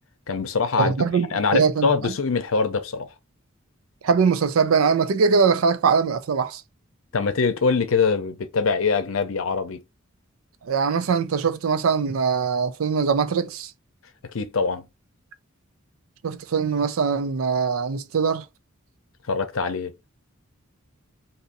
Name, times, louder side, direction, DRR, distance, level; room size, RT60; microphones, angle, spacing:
voice 1, 0.3-0.9 1.3-3.1 7.1-9.8 14.3-14.9 19.3-19.9, left 4 dB, 75° left, 0.6 m, -23 dB
voice 2, 0.8-2.1 4.0-6.6 10.6-13.7 16.2-18.5, right 5 dB, 80° right, 0.4 m, -22 dB
2.7 x 2.6 x 3.9 m
head